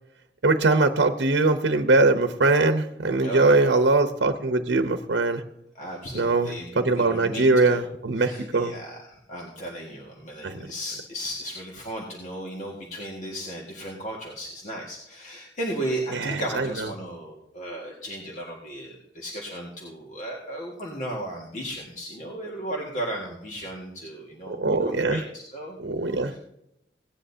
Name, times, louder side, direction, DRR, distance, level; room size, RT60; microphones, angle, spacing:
voice 1, 0.4-5.4 6.1-8.7 10.4-10.7 16.1-16.7 24.5-25.2 25.8-26.3, right 3 dB, 85° right, 7 dB, 0.8 m, -22 dB
voice 2, 3.2-3.8 5.8-7.8 8.3-25.8 26.1-26.4, right 1 dB, 45° left, -3 dB, 1.8 m, -35 dB
17.0 x 10.0 x 2.8 m, 0.82 s
head